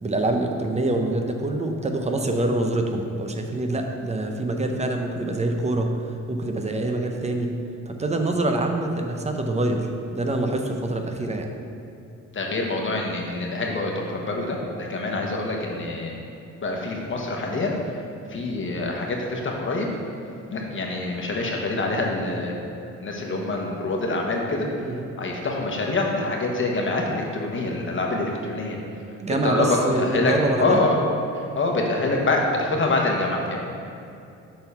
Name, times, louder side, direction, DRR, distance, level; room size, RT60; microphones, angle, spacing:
voice 1, 0.0-5.9 6.3-7.5 7.9-11.5 24.8-25.0 29.2-30.8, right 2 dB, 20° right, 4 dB, 0.7 m, -25 dB
voice 2, 12.3-16.2 16.6-18.0 18.3-19.9 20.5-22.6 23.0-24.7 25.2-28.8 29.3-30.3 30.6-30.9 31.3-33.6, left 2 dB, 40° left, 0 dB, 1.2 m, -25 dB
6.8 x 3.9 x 5.6 m, 2.7 s
cardioid pair, 90°, 30 cm